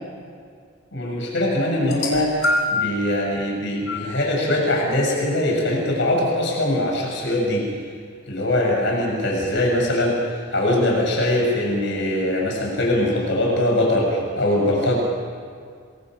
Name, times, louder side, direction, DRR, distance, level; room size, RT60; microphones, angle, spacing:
voice 1, 0.9-7.7 8.3-15.0, left 1 dB, 60° left, -1 dB, 7.2 m, -22 dB
sound 1, 1.8-3.0 3.9-4.1 5.1-5.2, left 2 dB, 85° left, 5.5 m, -24 dB
26.0 x 25.0 x 6.5 m, 2.1 s
head